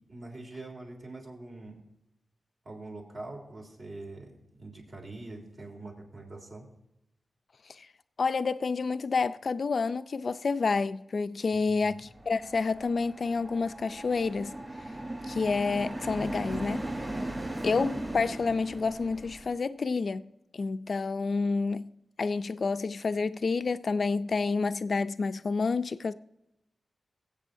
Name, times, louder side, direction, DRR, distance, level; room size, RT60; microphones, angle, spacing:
voice 1, 0.1-1.8 2.7-6.7 11.5-12.0, right 2 dB, 55° right, 3.4 m, -44 dB
voice 2, 8.2-14.5 15.3-17.1 17.6-20.2 20.5-21.9 22.2-26.1, left 4 dB, 55° left, 0.4 m, -29 dB
sound 1, 12.1-19.5, right 1 dB, 20° right, 3.5 m, -38 dB
22.0 x 8.2 x 2.7 m
wide cardioid pair, 125°, 0 cm